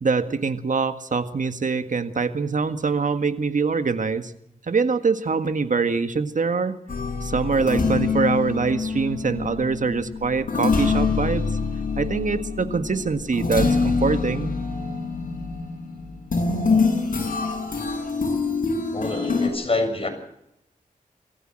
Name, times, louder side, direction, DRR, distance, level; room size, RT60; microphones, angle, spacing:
voice 1, 0.0-4.3 4.7-6.8 7.2-11.5 12.0-14.5, right 4 dB, 60° right, 9 dB, 1.8 m, -24 dB
sound 1, 6.9-19.5, left 4 dB, 65° left, 7.8 m, -25 dB
voice 2, 18.9-20.1, left 2 dB, 40° left, 5 dB, 6.8 m, -26 dB
23.0 x 15.0 x 7.7 m, 0.79 s
cardioid pair, 60°, 15 cm